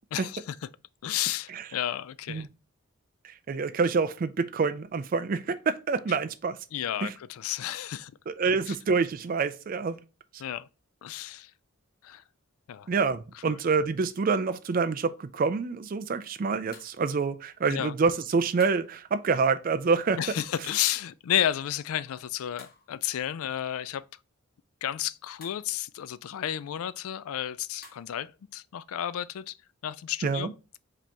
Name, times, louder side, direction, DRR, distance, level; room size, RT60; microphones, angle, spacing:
voice 1, 0.1-0.6 1.0-2.5 6.7-8.1 8.7-8.8 10.4-10.7 11.0-11.5 12.0-12.2 12.7-12.9 13.4-13.6 17.7-17.9 20.2-24.1 24.8-29.5 29.8-30.5, left 11 dB, 80° left, 0.3 m, -32 dB
voice 2, 3.2-6.6 7.0-7.1 8.3-10.0 12.9-20.2 30.2-30.5, right 4 dB, 40° right, 0.3 m, -27 dB
sound 1, 14.7-14.9 16.7-17.0 18.6-18.9 20.7-21.0 22.6-23.1 25.4-25.7 27.8-28.1, left 4 dB, 45° left, 1.1 m, -52 dB
5.0 x 2.9 x 3.3 m
head